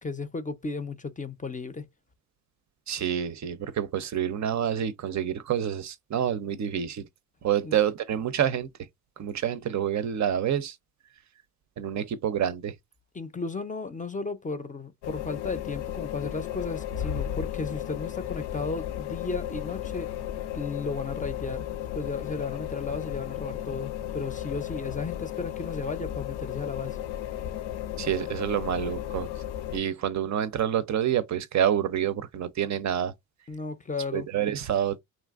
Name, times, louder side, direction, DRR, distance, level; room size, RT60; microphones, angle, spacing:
voice 1, 0.0-1.9 7.6-7.8 13.1-20.1 20.5-21.7 21.9-27.0 33.5-34.3, left 4 dB, 20° left, 0.5 m, -34 dB
voice 2, 2.9-7.0 7.4-8.7 9.2-10.8 11.8-12.7 28.0-29.3 29.7-33.1 34.1-35.0, right 9 dB, 45° right, 0.5 m, -27 dB
sound 1, 15.0-29.8, left 11 dB, 70° left, 0.6 m, -34 dB
2.9 x 2.5 x 2.4 m
supercardioid pair, 65°, 40 cm